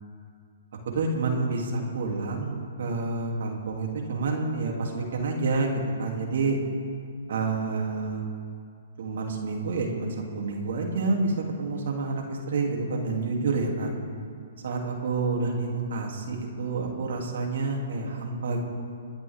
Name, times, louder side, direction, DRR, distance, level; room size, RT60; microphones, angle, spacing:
voice 1, 0.9-6.6 7.3-8.2 9.0-13.9 14.6-18.6, right 3 dB, 65° right, 0 dB, 2.9 m, -28 dB
27.5 x 10.5 x 3.7 m, 2.3 s
hypercardioid pair, 130°, 0 cm